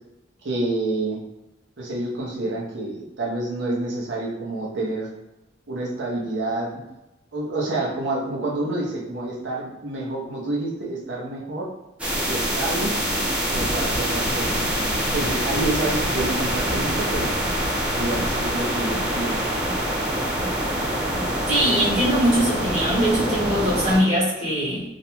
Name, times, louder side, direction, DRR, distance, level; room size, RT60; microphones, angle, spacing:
voice 1, 0.4-1.2 1.8-5.1 5.7-6.8 7.3-11.7 12.3-12.9 13.5-14.7 15.1-17.3 17.9-19.5, right 2 dB, 70° right, -3 dB, 0.7 m, -28 dB
sound 1, 12.0-24.0, right 1 dB, 5° right, 0.4 m, -25 dB
sound 2, 13.5-22.0, left 1 dB, 70° left, 0.5 m, -34 dB
voice 2, 21.5-24.8, equal, 35° right, -7 dB, 1.0 m, -21 dB
2.5 x 2.1 x 2.9 m, 0.98 s
head